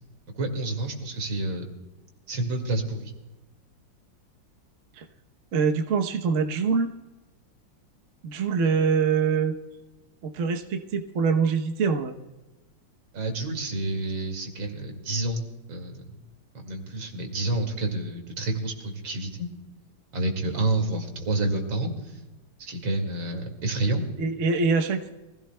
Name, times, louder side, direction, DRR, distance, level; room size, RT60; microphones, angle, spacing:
voice 1, 0.3-1.6 2.3-3.1 13.1-16.2 16.5-19.5 20.1-22.2 22.6-24.0, right 2 dB, 80° right, 3 dB, 3.0 m, -29 dB
voice 2, 5.5-6.9 8.2-9.5 10.2-12.1 24.2-25.1, right 5 dB, 50° right, 4 dB, 1.1 m, -24 dB
24.5 x 16.0 x 2.2 m, 1.1 s
omnidirectional pair, 2.1 m